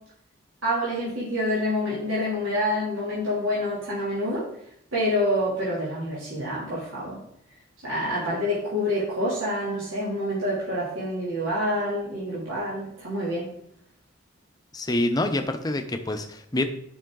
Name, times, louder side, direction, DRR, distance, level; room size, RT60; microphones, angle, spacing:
voice 1, 0.6-4.5 4.9-7.2 7.8-13.5, left 1 dB, 85° right, -8 dB, 3.0 m, -27 dB
voice 2, 14.7-16.7, left 1 dB, 20° left, 6 dB, 0.7 m, -26 dB
11.0 x 5.6 x 3.9 m, 0.72 s
head